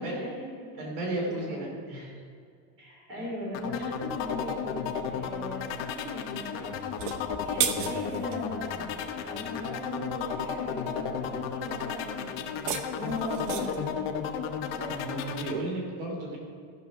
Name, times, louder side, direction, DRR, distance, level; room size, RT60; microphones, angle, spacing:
voice 1, 0.0-0.8 1.2-1.7 2.8-6.8 7.4-8.9 9.2-13.9 14.7-14.9, left 1 dB, 25° right, -3 dB, 3.0 m, -38 dB
voice 2, 0.8-2.2 3.1-3.2 14.8-16.4, right 1 dB, 65° right, -1 dB, 2.8 m, -34 dB
sound 1, 3.5-15.6, left 7 dB, 30° left, 0.5 m, -33 dB
sound 2, 6.9-8.4 12.4-13.9, right 8 dB, 80° right, 1.1 m, -33 dB
15.0 x 6.0 x 6.0 m, 2.2 s
supercardioid pair, 175°, 47 cm